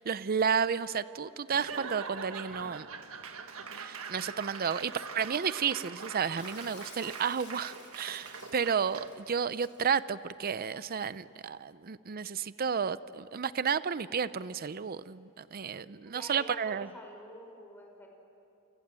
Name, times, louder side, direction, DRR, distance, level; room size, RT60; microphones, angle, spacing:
voice 1, 0.0-2.9 3.7-16.9, right 6 dB, 45° right, 15 dB, 0.6 m, -32 dB
Laughter / Applause / Crowd, 1.5-9.3, right 5 dB, 75° right, 1.7 m, -43 dB
Shatter, 6.4-9.8, left 7 dB, 55° left, 3.3 m, -54 dB
voice 2, 16.0-18.1, left 1 dB, 10° left, 1 dB, 5.4 m, -48 dB
28.5 x 26.0 x 7.6 m, 2.8 s
head